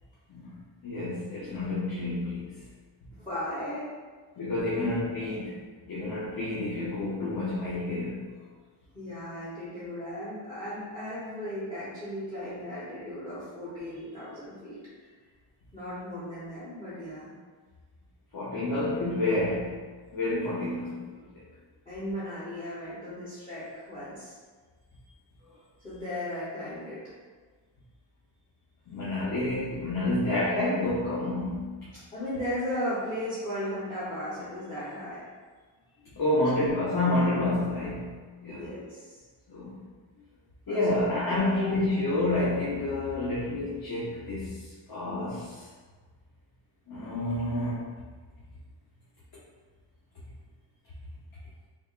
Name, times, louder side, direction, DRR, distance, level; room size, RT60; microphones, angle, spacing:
voice 1, 0.3-2.6 4.4-8.3 18.3-19.8 20.1-21.4 28.9-31.9 36.2-38.7 39.5-39.8 40.7-45.7 46.9-47.8, left 2 dB, 55° left, -9 dB, 0.9 m, -29 dB
voice 2, 3.2-3.9 8.9-14.8 15.7-17.3 21.9-24.4 25.8-27.0 32.1-35.2 36.3-36.5 38.4-39.2 40.7-41.0 41.3-42.0, equal, 15° left, -12 dB, 0.9 m, -36 dB
3.4 x 3.3 x 2.4 m, 1.5 s
wide cardioid pair, 155°, 45 cm